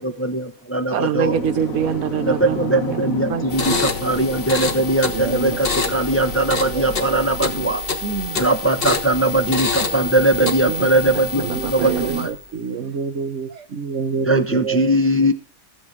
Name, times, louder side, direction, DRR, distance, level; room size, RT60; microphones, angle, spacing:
voice 1, 0.0-1.4 2.2-7.8 8.3-12.3 14.2-15.3, right 1 dB, 10° left, 0.8 m, -20 dB
voice 2, 0.9-3.8 4.3-4.4 8.0-8.4 10.4-10.9 11.5-12.3, right 9 dB, 85° right, 1.3 m, -25 dB
sound 1, 1.2-7.7, left 5 dB, 70° left, 1.8 m, -33 dB
sound 2, 3.5-12.4, left 4 dB, 40° left, 1.5 m, -27 dB
voice 3, 5.1-5.6 6.3-7.8 11.4-14.9, right 6 dB, 60° right, 1.2 m, -28 dB
14.0 x 8.7 x 4.8 m
omnidirectional pair, 1.5 m